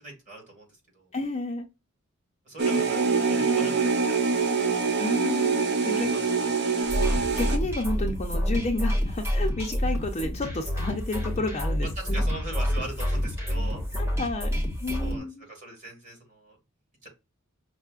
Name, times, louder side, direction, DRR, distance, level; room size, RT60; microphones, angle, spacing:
voice 1, 0.0-1.1 2.5-4.7 5.9-6.5 12.0-13.8 15.0-16.6 17.0-17.1, right 2 dB, 35° right, -1 dB, 1.8 m, -41 dB
voice 2, 1.1-1.7 5.0-6.1 7.4-12.2 13.9-15.4, left 2 dB, 30° left, 3 dB, 0.5 m, -31 dB
sound 1, 2.6-7.6, right 4 dB, 50° right, 0.6 m, -25 dB
sound 2, 6.8-15.2, equal, 10° right, 0.9 m, -28 dB
5.4 x 2.1 x 2.3 m, 0.26 s
head